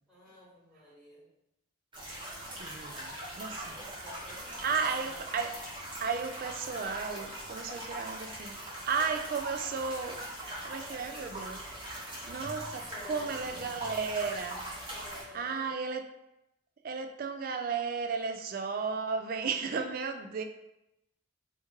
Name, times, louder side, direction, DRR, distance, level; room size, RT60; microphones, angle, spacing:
voice 1, 0.1-1.3 3.4-5.2 12.9-13.8 14.9-15.7, left 1 dB, ahead, 1.3 m, -51 dB
sound 1, 1.9-15.2, right 1 dB, 25° right, 1.0 m, -41 dB
voice 2, 2.6-3.8 4.6-5.6 6.0-10.3 10.6-11.7 12.3-14.6 15.3-16.0 16.8-20.4, right 5 dB, 45° right, 0.3 m, -34 dB
3.0 x 2.8 x 3.5 m
head